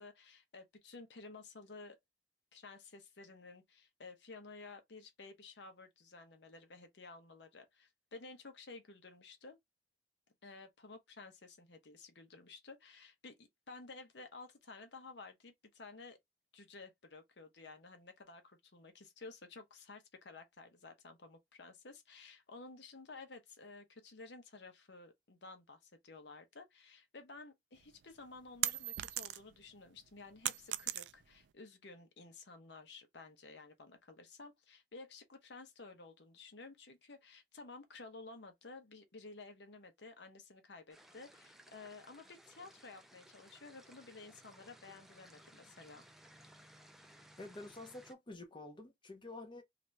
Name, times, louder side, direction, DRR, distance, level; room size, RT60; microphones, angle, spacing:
voice 1, 0.0-2.0 2.5-9.6 10.4-16.2 16.5-46.0, left 3 dB, 65° left, 0.9 m, -53 dB
sound 1, 27.8-29.6 30.0-31.4, right 14 dB, 70° right, 0.3 m, -38 dB
sound 2, 40.9-48.1, equal, ahead, 0.4 m, -60 dB
voice 2, 47.4-49.6, left 2 dB, 25° left, 0.8 m, -49 dB
2.9 x 2.5 x 3.2 m
head